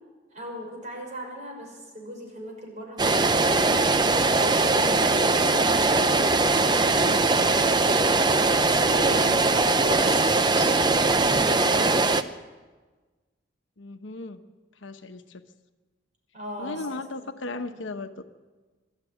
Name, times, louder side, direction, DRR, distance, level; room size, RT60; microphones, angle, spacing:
voice 1, 0.3-7.6 8.5-12.1 16.3-17.5, right 1 dB, 40° right, 0 dB, 6.3 m, -38 dB
sound 1, 3.0-12.2, right 3 dB, 20° right, 0.7 m, -21 dB
voice 2, 13.8-14.4 14.8-15.4 16.6-18.2, left 2 dB, 80° left, 7 dB, 1.1 m, -36 dB
22.5 x 13.0 x 9.4 m, 1.3 s
head